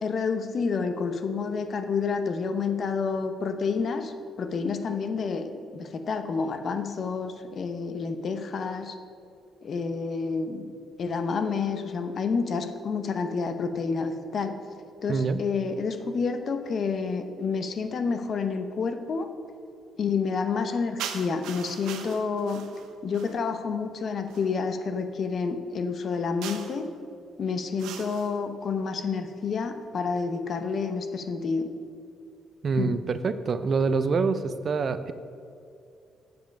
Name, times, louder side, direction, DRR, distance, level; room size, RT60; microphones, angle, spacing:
voice 1, 0.0-9.0 9.6-10.7 11.0-14.5 15.0-19.3 20.0-22.6 23.0-26.9 27.4-31.7 32.8-32.9, left 5 dB, 50° left, 8 dB, 0.8 m, -29 dB
voice 2, 15.1-15.4 32.6-35.1, right 4 dB, 50° right, 12 dB, 0.5 m, -26 dB
sound 1, 21.0-23.5 24.3-24.5 26.4-26.9 27.8-28.4, right 8 dB, 85° right, 0.7 m, -40 dB
7.9 x 7.1 x 5.2 m, 2.5 s
cardioid pair, 90°, 0 cm